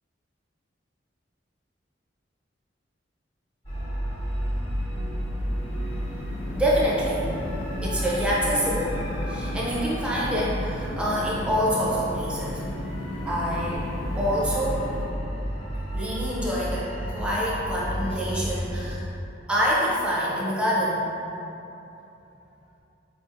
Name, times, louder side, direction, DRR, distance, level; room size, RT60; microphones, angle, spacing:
sound 1, 3.6-18.9, equal, 30° left, 0.9 m, -32 dB
sound 2, 4.5-15.1, left 1 dB, 75° left, 0.4 m, -36 dB
voice 1, 6.5-9.0 9.3-12.6 13.3-13.8 14.2-14.9 15.9-19.1 19.5-21.0, equal, 5° right, -7 dB, 0.5 m, -26 dB
4.2 x 2.6 x 2.5 m, 2.9 s
head